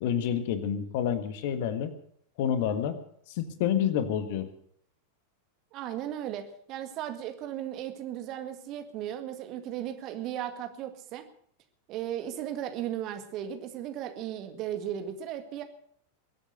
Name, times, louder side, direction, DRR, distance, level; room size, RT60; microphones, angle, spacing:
voice 1, 0.0-1.9 2.4-3.0 3.3-4.5, left 9 dB, 50° left, 11 dB, 1.5 m, -28 dB
voice 2, 5.7-11.3 11.9-15.6, right 11 dB, 40° right, 7 dB, 1.9 m, -36 dB
22.5 x 8.5 x 6.6 m, 0.66 s
figure-of-eight pair, 90°, 0 cm